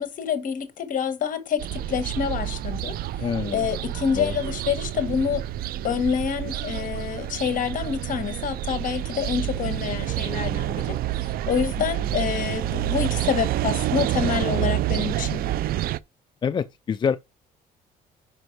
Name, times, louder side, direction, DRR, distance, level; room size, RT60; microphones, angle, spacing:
voice 1, 0.0-2.9 3.5-5.4 5.8-15.4, left 7 dB, 50° left, 1.4 m, -27 dB
sound 1, 1.6-16.0, right 13 dB, 60° right, 0.4 m, -28 dB
voice 2, 3.2-3.7 4.1-4.3 16.4-17.2, left 7 dB, 25° left, 0.3 m, -26 dB
5.4 x 5.1 x 4.6 m
cardioid pair, 110°, 17 cm